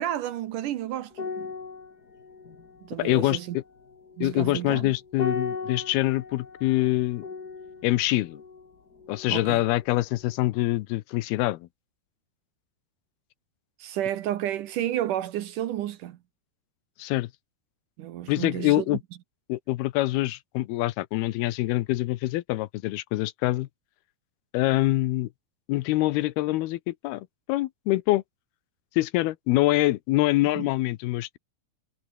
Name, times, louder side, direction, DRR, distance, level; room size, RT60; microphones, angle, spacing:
voice 1, 0.0-1.5 2.8-3.6 4.2-4.9 9.3-9.6 13.8-16.2 18.0-19.0 30.6-30.7, right 12 dB, 70° right, 2.2 m, -31 dB
sound 1, 1.1-9.8 10.1-10.4, left 4 dB, 30° left, 2.5 m, -38 dB
voice 2, 3.0-3.6 4.2-7.2 7.8-8.4 9.1-11.7 17.0-17.3 18.3-19.0 19.5-23.7 24.5-25.3 25.7-28.2 29.0-31.4, left 17 dB, 85° left, 2.7 m, -25 dB
omnidirectional pair, 4.5 m